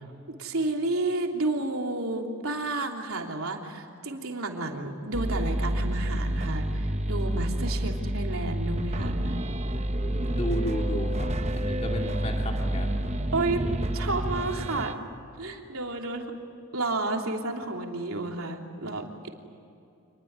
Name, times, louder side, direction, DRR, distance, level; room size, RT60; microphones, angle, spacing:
voice 1, 0.4-9.4 13.3-13.7 13.9-15.0 15.4-16.3 16.7-19.3, right 2 dB, 80° right, 2 dB, 3.2 m, -31 dB
sound 1, 5.1-14.9, right 1 dB, 30° right, 1.0 m, -29 dB
voice 2, 10.2-13.0, equal, 30° left, 1 dB, 2.6 m, -34 dB
27.5 x 20.5 x 9.6 m, 2.6 s
head